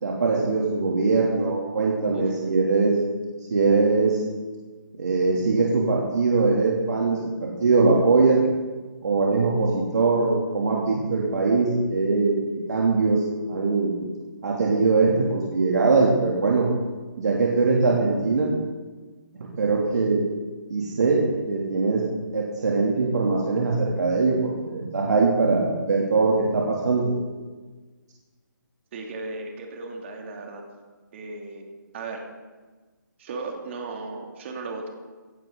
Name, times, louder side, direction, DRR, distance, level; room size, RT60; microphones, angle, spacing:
voice 1, 0.0-3.0 3.5-4.2 5.0-8.4 9.0-12.4 12.7-14.0 14.4-16.7 17.2-18.5 19.6-20.2 20.7-21.2 21.5-22.0 22.3-27.1, right 3 dB, 55° right, -3 dB, 3.0 m, -21 dB
voice 2, 28.9-30.7 31.1-31.7 31.9-32.3 33.2-34.9, right 3 dB, 35° right, 1 dB, 3.0 m, -36 dB
16.5 x 16.0 x 4.0 m, 1.3 s
figure-of-eight pair, 145°, 11 cm